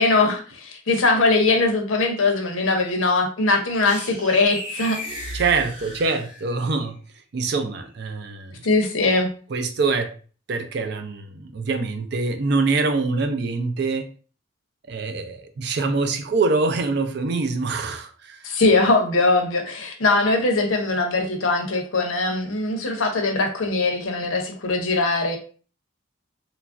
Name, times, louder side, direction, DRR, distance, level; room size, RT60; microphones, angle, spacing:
voice 1, 0.0-5.0 8.6-9.3 18.4-25.4, left 3 dB, 85° left, 4 dB, 0.7 m, -21 dB
sound 1, 3.8-6.7, equal, 25° right, 0.7 m, -35 dB
voice 2, 5.3-7.0 7.3-8.7 9.5-10.1 10.5-14.1 14.9-18.4, right 3 dB, 55° right, 7 dB, 0.4 m, -24 dB
3.1 x 2.4 x 2.4 m, 0.39 s
head